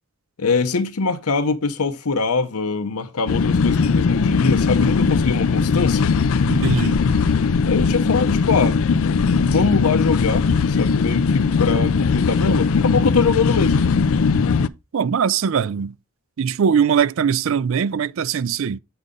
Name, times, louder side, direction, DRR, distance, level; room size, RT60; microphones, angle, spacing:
voice 1, 0.4-6.2 7.6-8.8 9.3-13.9, left 4 dB, 85° left, 0.9 m, -23 dB
sound 1, 3.3-14.7, left 5 dB, 70° left, 0.4 m, -19 dB
voice 2, 6.5-7.0 14.9-15.9 16.4-18.8, right 7 dB, 60° right, 0.4 m, -21 dB
8.1 x 5.3 x 3.8 m
head